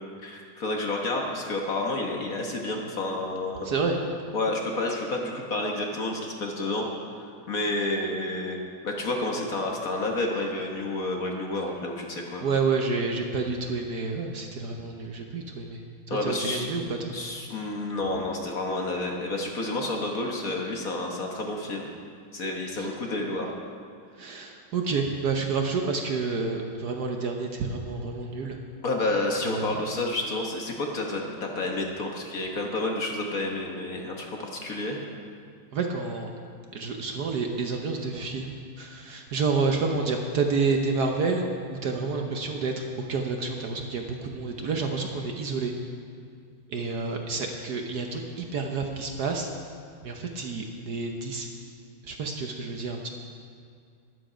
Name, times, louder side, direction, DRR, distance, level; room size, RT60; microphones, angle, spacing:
voice 1, 0.2-3.7 4.3-6.9 7.2-8.6 8.8-12.4 16.1-16.7 17.1-21.9 22.3-23.6 28.8-35.1, left 2 dB, 50° left, 0 dB, 1.5 m, -30 dB
voice 2, 3.6-4.0 12.4-15.8 16.1-17.2 22.8-22.9 24.2-28.6 29.4-29.8 35.7-36.3 36.7-41.4 41.8-45.7 46.7-49.5 50.0-51.5 52.0-53.1, right 4 dB, 60° right, 3 dB, 1.2 m, -29 dB
12.5 x 11.0 x 5.0 m, 2.3 s
omnidirectional pair, 2.2 m